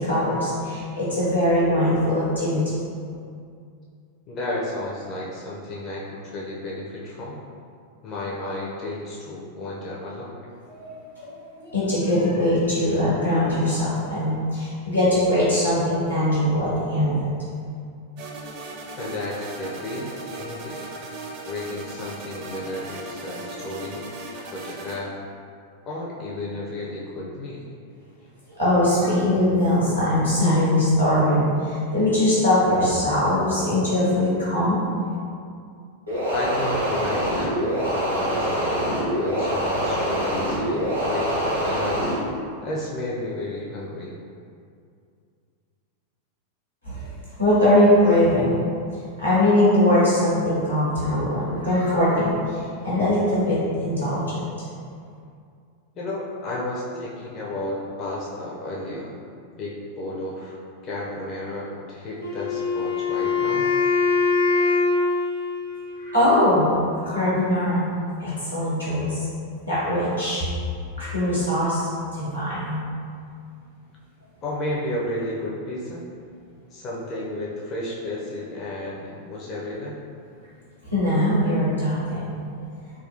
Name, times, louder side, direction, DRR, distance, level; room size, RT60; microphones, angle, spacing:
voice 1, 0.0-2.7 10.7-17.3 28.5-34.8 46.8-47.1 47.4-48.5 49.2-54.5 66.0-67.9 68.2-69.3 69.6-70.5 71.0-72.8 80.8-82.5, left 1 dB, 90° left, -10 dB, 1.2 m, -21 dB
voice 2, 4.3-7.4 8.0-10.3 19.0-20.1 20.4-20.8 21.4-24.0 24.3-25.2 25.8-27.7 36.3-42.1 42.6-44.1 55.9-59.1 59.6-63.7 74.4-76.0 76.7-80.0, left 1 dB, 35° left, -5 dB, 0.4 m, -32 dB
sound 1, 18.2-25.0, right 2 dB, 45° right, 0.5 m, -37 dB
sound 2, 36.1-42.2, equal, 85° right, 1.0 m, -24 dB
Wind instrument woodwind instrument, 62.2-66.2, left 4 dB, 70° left, 0.7 m, -23 dB
3.4 x 2.3 x 2.5 m, 2.3 s
figure-of-eight pair, 90°, 0 cm